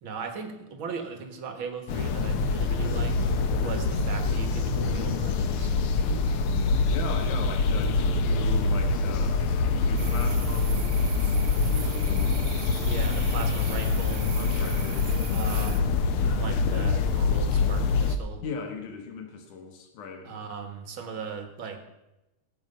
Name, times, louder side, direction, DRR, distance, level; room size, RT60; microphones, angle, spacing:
voice 1, 0.0-3.2 3.6-5.7 12.8-14.4 15.3-18.4 20.3-21.8, right 5 dB, 50° right, 6 dB, 1.8 m, -38 dB
sound 1, 1.9-18.2, left 4 dB, 65° left, 1.4 m, -25 dB
voice 2, 6.9-12.4 14.3-15.2 18.4-20.4, left 5 dB, 85° left, 4 dB, 2.9 m, -39 dB
sound 2, 10.0-15.8, right 9 dB, 70° right, 1.3 m, -41 dB
18.0 x 8.0 x 5.5 m, 0.96 s
omnidirectional pair, 3.4 m